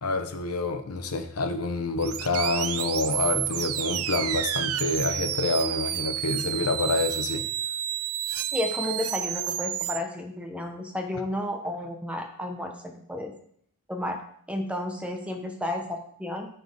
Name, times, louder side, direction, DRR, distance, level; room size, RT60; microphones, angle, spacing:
voice 1, 0.0-7.4, left 3 dB, 85° left, 7 dB, 0.9 m, -27 dB
sound 1, 2.0-10.0, right 11 dB, 70° right, 0.5 m, -30 dB
voice 2, 8.5-13.3 13.9-14.2 14.5-16.5, left 1 dB, 5° right, 3 dB, 0.9 m, -32 dB
13.0 x 4.4 x 3.5 m, 0.64 s
head